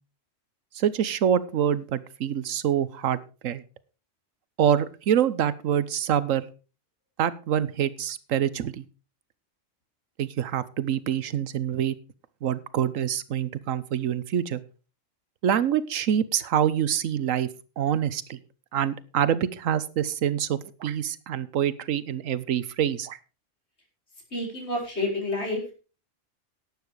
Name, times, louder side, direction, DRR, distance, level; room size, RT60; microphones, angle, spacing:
voice 1, 0.7-3.2 3.4-3.6 4.6-6.4 7.2-8.8 10.2-11.9 12.4-14.6 15.4-17.5 17.8-18.4 18.7-23.2, right 9 dB, 85° right, 17 dB, 1.2 m, -26 dB
voice 2, 24.3-25.7, left 2 dB, 55° left, 0 dB, 5.0 m, -29 dB
11.5 x 9.6 x 4.8 m, 0.35 s
omnidirectional pair, 1.3 m